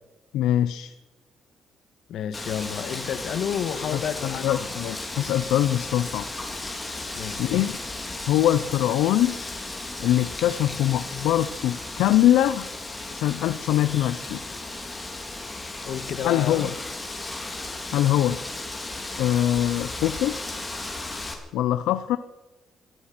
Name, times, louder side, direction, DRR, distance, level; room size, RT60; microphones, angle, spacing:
voice 1, 0.3-0.9 3.9-6.3 6.9-7.0 7.4-7.7 8.3-9.4 10.0-12.7 13.1-14.4 16.2-16.7 17.9-18.4 19.2-20.4 21.5-22.2, left 12 dB, 90° left, 12 dB, 0.6 m, -23 dB
voice 2, 2.1-4.7 7.1-7.7 15.8-16.8, left 8 dB, 75° left, 11 dB, 1.5 m, -31 dB
Wind, 2.3-21.3, left 2 dB, 15° left, 3.4 m, -35 dB
17.0 x 14.0 x 6.1 m, 1.1 s
cardioid pair, 90°, 0 cm